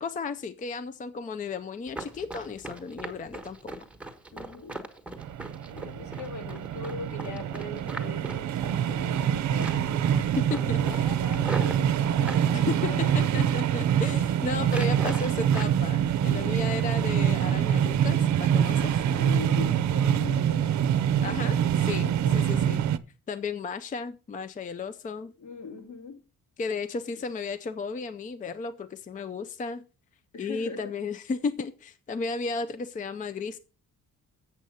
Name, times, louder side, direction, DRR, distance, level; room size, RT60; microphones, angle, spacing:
voice 1, 0.0-3.8 10.4-10.8 12.5-19.1 21.2-22.1 22.3-22.8 23.3-25.3 26.6-29.8 30.4-33.6, left 4 dB, 25° left, 0.4 m, -34 dB
Run, 1.9-9.3 9.6-10.0 10.3-12.5 13.0-13.6 13.9-14.2 14.6-15.8 16.1-16.9 17.2-17.4 17.8-18.1 18.5-18.6 19.1-19.2 19.6-19.7, right 2 dB, 5° right, 1.2 m, -40 dB
voice 2, 4.3-4.8 5.7-13.5 16.2-16.8 19.1-21.0 21.4-21.5 22.0-22.5 25.4-26.2 30.3-30.9, left 4 dB, 60° left, 1.9 m, -41 dB
sound 1, 5.2-23.0, right 9 dB, 60° right, 0.6 m, -25 dB
7.8 x 7.3 x 5.5 m
cardioid pair, 160°, 32 cm